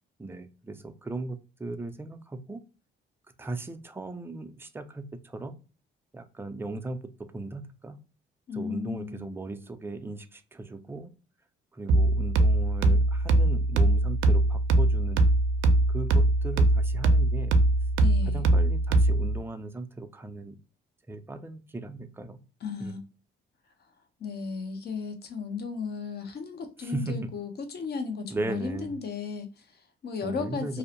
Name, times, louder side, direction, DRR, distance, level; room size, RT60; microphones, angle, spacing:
voice 1, 0.2-2.6 3.4-5.6 6.1-7.0 7.3-8.0 8.5-11.1 11.7-15.2 15.9-17.6 18.3-20.6 21.1-22.4 22.8-23.0 26.8-27.3 28.3-28.9 30.2-30.8, right 2 dB, 10° right, 0.4 m, -37 dB
voice 2, 8.5-9.3 18.0-18.5 22.6-23.0 24.2-30.8, left 5 dB, 55° left, 0.7 m, -35 dB
sound 1, 11.9-19.4, right 2 dB, 85° right, 0.4 m, -22 dB
2.6 x 2.0 x 2.7 m
cardioid pair, 90°, 20 cm